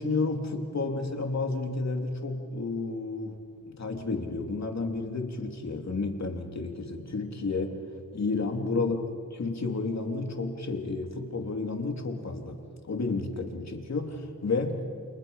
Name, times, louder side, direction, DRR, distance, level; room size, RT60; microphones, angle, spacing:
voice 1, 0.0-3.4 3.6-7.8 8.1-9.0 9.3-12.6 12.9-14.8, left 3 dB, 50° left, 3 dB, 3.0 m, -31 dB
29.5 x 27.5 x 5.7 m, 2.2 s
wide cardioid pair, 105°, 35 cm